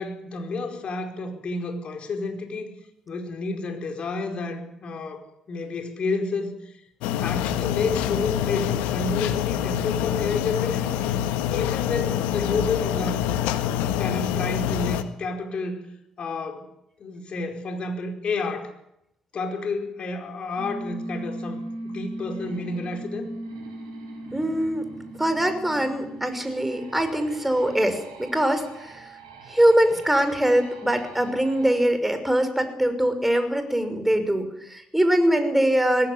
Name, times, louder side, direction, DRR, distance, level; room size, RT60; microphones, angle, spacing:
voice 1, 0.0-2.7 3.1-5.2 5.5-6.7 7.2-11.0 11.5-13.2 14.0-15.8 16.2-16.7 17.0-18.7 19.3-23.3, left 3 dB, 50° left, 5 dB, 4.7 m, -30 dB
sound 1, 7.0-15.0, left 10 dB, 75° left, 1.4 m, -26 dB
sound 2, 20.5-31.8, right 2 dB, 85° right, 5.2 m, -39 dB
voice 2, 24.3-24.8 25.2-29.2 29.5-36.1, right 1 dB, 5° right, 8 dB, 5.8 m, -22 dB
20.0 x 16.0 x 9.9 m, 0.81 s
hypercardioid pair, 45°, 2 cm